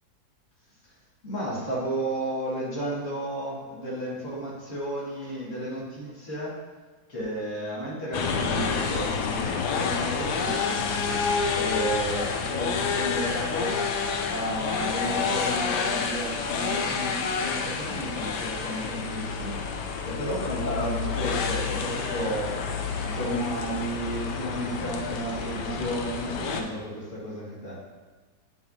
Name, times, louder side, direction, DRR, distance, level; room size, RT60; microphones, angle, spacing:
voice 1, 1.2-6.6 7.1-10.7 11.5-27.8, right 1 dB, 40° left, -7 dB, 2.4 m, -33 dB
sound 1, 8.1-26.6, left 5 dB, 70° left, 1.1 m, -29 dB
9.5 x 5.7 x 2.9 m, 1.4 s
omnidirectional pair, 2.2 m